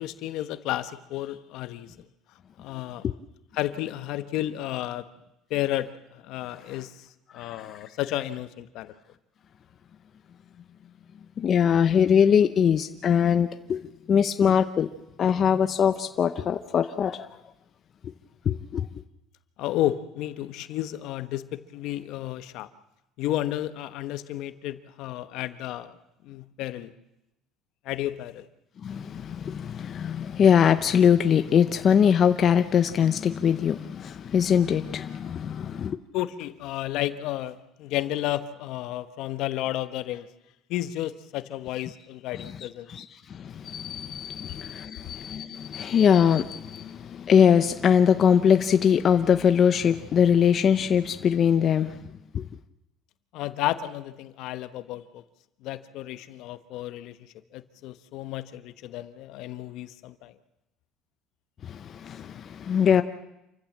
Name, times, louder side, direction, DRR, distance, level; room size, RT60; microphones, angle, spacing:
voice 1, 0.0-1.9 2.6-3.1 3.5-5.0 5.5-7.1 7.3-8.9 19.6-22.7 23.2-26.0 26.2-26.9 27.8-28.5 36.1-40.3 40.7-42.9 53.3-55.2 55.6-57.2 57.5-60.3, left 14 dB, 65° left, 1.1 m, -32 dB
voice 2, 11.4-13.8 14.1-14.9 15.2-17.3 18.4-18.9 28.8-36.0 42.4-42.5 42.9-43.0 43.3-52.0 52.3-52.5 61.6-63.0, left 8 dB, 35° left, 0.8 m, -22 dB
27.5 x 15.0 x 7.4 m
cardioid pair, 140°, 0 cm